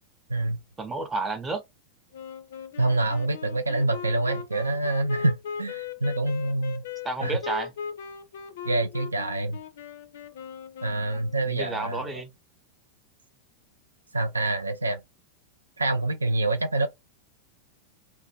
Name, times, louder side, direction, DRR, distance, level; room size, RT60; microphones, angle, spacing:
voice 1, 0.8-1.6 7.0-7.7 11.1-12.3, right 3 dB, 15° right, 0.7 m, -31 dB
Wind instrument woodwind instrument, 2.1-11.6, left 7 dB, 60° left, 0.4 m, -39 dB
voice 2, 2.8-6.8 7.2-7.4 8.6-9.6 10.8-12.1 14.1-15.0 15.8-16.9, right 2 dB, 80° right, 0.4 m, -26 dB
2.6 x 2.1 x 2.6 m
figure-of-eight pair, 90°, 0 cm